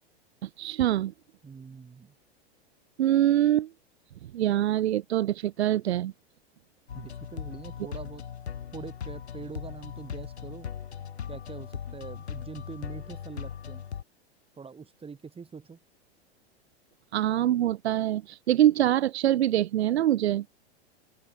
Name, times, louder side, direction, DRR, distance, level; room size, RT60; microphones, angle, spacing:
voice 1, 0.4-1.1 3.0-3.7 4.3-6.1 17.1-20.4, right 12 dB, 85° right, 0.6 m, -24 dB
voice 2, 1.4-2.1 6.9-8.2 8.7-10.7 11.3-13.8 14.6-15.8, right 5 dB, 15° right, 4.7 m, -44 dB
sound 1, 6.9-14.0, left 8 dB, 85° left, 4.2 m, -39 dB
open air
hypercardioid pair, 105°, 32 cm